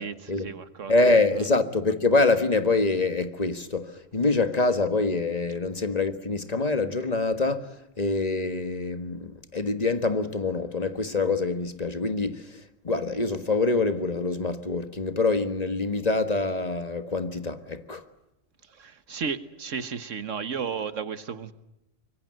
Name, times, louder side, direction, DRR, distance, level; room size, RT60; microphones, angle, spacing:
voice 1, 0.0-0.9 18.7-21.5, right 6 dB, 70° right, 1.5 m, -33 dB
voice 2, 0.9-18.0, left 3 dB, 30° left, 1.6 m, -25 dB
25.0 x 22.5 x 7.7 m
omnidirectional pair, 1.4 m